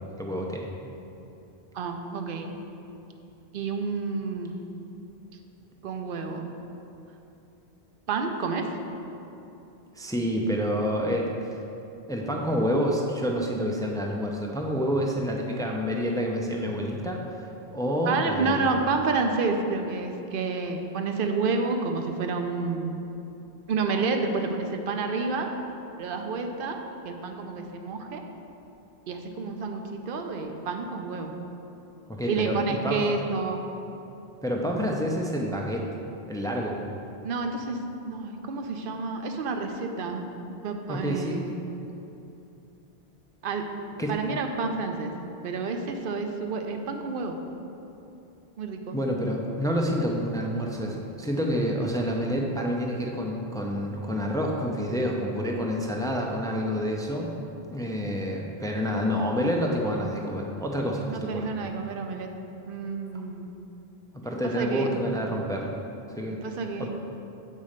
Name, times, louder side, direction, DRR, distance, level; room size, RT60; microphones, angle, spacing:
voice 1, 0.2-0.7 9.9-11.6 12.1-17.5 17.7-18.7 32.1-33.0 34.4-35.9 36.3-36.8 40.9-41.6 44.0-44.1 48.9-57.3 57.7-61.5 64.1-65.8 66.1-66.4 66.8-66.9, equal, 5° left, 0 dB, 0.3 m, -28 dB
voice 2, 1.7-2.5 3.5-4.6 5.8-6.5 8.1-8.7 18.0-22.9 23.7-25.5 26.0-26.8 27.0-28.2 29.1-31.3 32.3-33.6 37.2-37.8 38.0-40.3 40.6-41.5 43.4-43.7 44.1-45.1 45.4-47.4 48.6-49.0 61.0-62.3 62.7-63.5 64.5-64.9 66.3-66.9, right 4 dB, 60° right, 5 dB, 0.8 m, -29 dB
7.5 x 4.2 x 5.0 m, 2.9 s
omnidirectional pair, 1.1 m